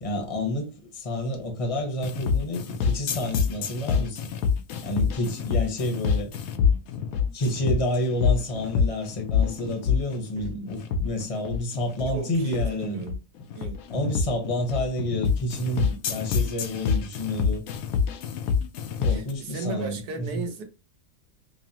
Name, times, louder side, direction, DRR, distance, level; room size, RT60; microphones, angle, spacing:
voice 1, 0.0-4.2 4.8-6.3 7.3-13.0 13.9-17.6 19.0-20.5, left 1 dB, 30° left, 0.8 m, -29 dB
sound 1, 2.0-19.3, left 6 dB, 70° left, 1.0 m, -26 dB
voice 2, 12.1-13.2 13.5-13.8 15.8-16.0 19.1-20.6, right 3 dB, 75° right, 1.3 m, -35 dB
5.4 x 2.0 x 2.7 m
omnidirectional pair, 1.7 m